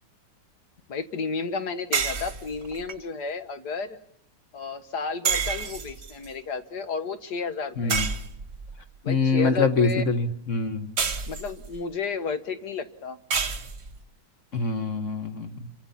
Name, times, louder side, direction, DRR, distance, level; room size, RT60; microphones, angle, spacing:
voice 1, 0.9-4.0 4.5-8.1 9.0-10.0 11.3-13.2, left 5 dB, 60° left, 9 dB, 1.9 m, -32 dB
sound 1, 1.9-2.9 5.2-6.3 7.9-8.8 11.0-11.8 13.3-14.0, right 5 dB, 40° right, 1.4 m, -29 dB
voice 2, 9.1-10.9 14.5-15.6, left 4 dB, 40° left, 7 dB, 1.8 m, -24 dB
29.0 x 24.5 x 5.8 m, 0.69 s
omnidirectional pair, 2.0 m